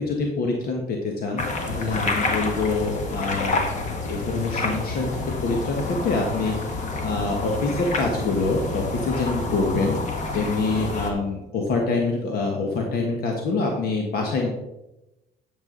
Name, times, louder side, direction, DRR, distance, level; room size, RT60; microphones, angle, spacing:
voice 1, 0.0-3.6 4.0-10.0 10.3-14.5, left 3 dB, 65° left, 1 dB, 1.6 m, -25 dB
sound 1, 1.4-11.1, left 3 dB, 45° left, 1.7 m, -28 dB
11.0 x 7.2 x 4.0 m, 0.96 s
cardioid pair, 110°, 17 cm